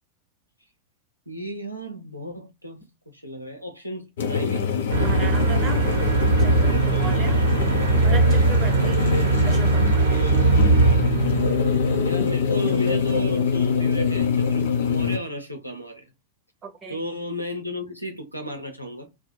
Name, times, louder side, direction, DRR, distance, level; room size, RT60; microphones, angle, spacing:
voice 1, 1.3-4.7 7.1-7.4 8.3-8.5 10.1-10.5 12.0-16.1 16.9-19.1, equal, 90° right, 0.5 m, -34 dB
sound 1, 4.2-15.2, left 6 dB, 60° left, 0.5 m, -24 dB
sound 2, 4.9-12.5, right 3 dB, 65° right, 0.9 m, -20 dB
voice 2, 5.0-5.8 6.4-7.4 8.0-9.0 9.4-10.2 16.6-17.0, right 5 dB, 25° right, 0.8 m, -36 dB
2.4 x 2.0 x 2.8 m
figure-of-eight pair, 90°, 0 cm